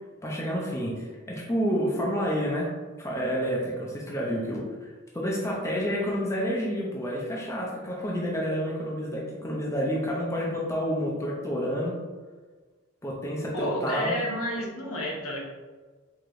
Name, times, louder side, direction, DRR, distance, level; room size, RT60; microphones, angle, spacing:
voice 1, 0.2-2.7 3.0-11.9 13.0-14.4, equal, 15° left, -3 dB, 0.5 m, -29 dB
voice 2, 13.5-15.4, equal, 85° left, -3 dB, 1.0 m, -30 dB
4.6 x 3.0 x 2.5 m, 1.3 s
head